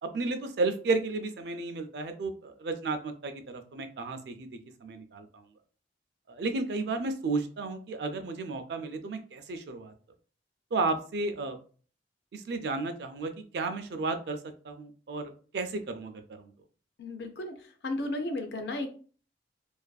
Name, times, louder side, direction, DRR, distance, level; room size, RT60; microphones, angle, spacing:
voice 1, 0.0-4.5 4.8-5.4 6.3-9.9 10.7-11.6 12.3-14.4 14.6-16.5, right 3 dB, 65° right, 8 dB, 0.4 m, -33 dB
voice 2, 17.0-17.5 17.8-18.9, left 2 dB, 65° left, 6 dB, 0.4 m, -33 dB
2.4 x 2.3 x 2.2 m, 0.41 s
head